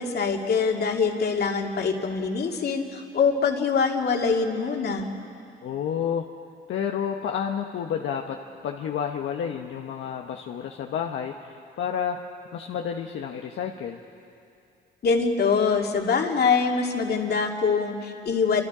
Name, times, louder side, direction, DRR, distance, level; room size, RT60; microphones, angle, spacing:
voice 1, 0.0-5.1 15.0-18.6, left 5 dB, 55° left, 2 dB, 2.5 m, -24 dB
voice 2, 5.6-6.3 6.7-8.4 8.6-12.2 12.5-14.0, left 8 dB, 75° left, 2 dB, 1.2 m, -30 dB
29.0 x 25.0 x 5.0 m, 2.6 s
cardioid pair, 90°, 20 cm